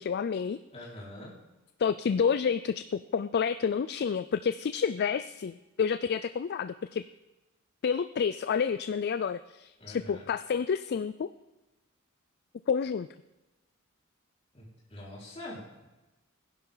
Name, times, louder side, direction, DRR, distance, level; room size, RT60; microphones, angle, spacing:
voice 1, 0.0-0.6 1.8-7.0 7.8-11.3 12.7-13.1, left 6 dB, 50° left, 13 dB, 0.4 m, -29 dB
voice 2, 0.7-1.3 9.8-10.3 14.5-14.6 14.9-15.9, left 1 dB, 30° left, -6 dB, 4.8 m, -44 dB
21.0 x 10.5 x 3.9 m, 1.1 s
head